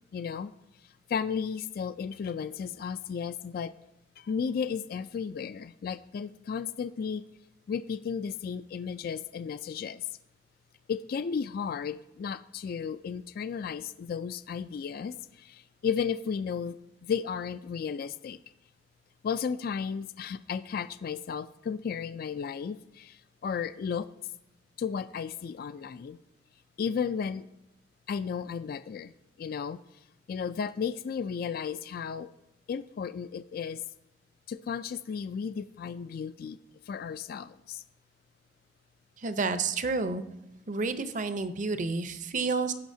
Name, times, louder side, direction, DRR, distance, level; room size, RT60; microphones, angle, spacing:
voice 1, 0.1-0.5 1.1-3.7 4.2-7.2 7.7-10.1 10.9-16.8 17.0-18.4 19.2-24.1 24.8-26.2 26.8-27.5 28.1-29.1 29.4-29.8 30.3-32.3 32.7-33.8 34.5-36.6 36.9-37.8, left 6 dB, 55° left, 13 dB, 0.3 m, -34 dB
voice 2, 39.2-40.3 40.7-42.7, right 4 dB, 45° right, 11 dB, 0.7 m, -30 dB
16.5 x 5.6 x 2.7 m, 0.92 s
head